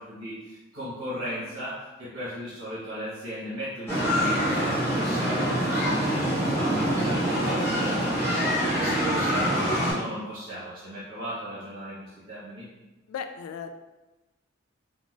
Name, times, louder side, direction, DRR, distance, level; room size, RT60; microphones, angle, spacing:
voice 1, 0.0-9.7 9.9-12.7, equal, 60° right, -11 dB, 1.1 m, -37 dB
sound 1, 3.9-9.9, equal, 10° left, 1.0 m, -25 dB
voice 2, 13.1-13.7, left 7 dB, 90° left, 11 dB, 0.3 m, -36 dB
3.8 x 2.4 x 2.4 m, 1.1 s
head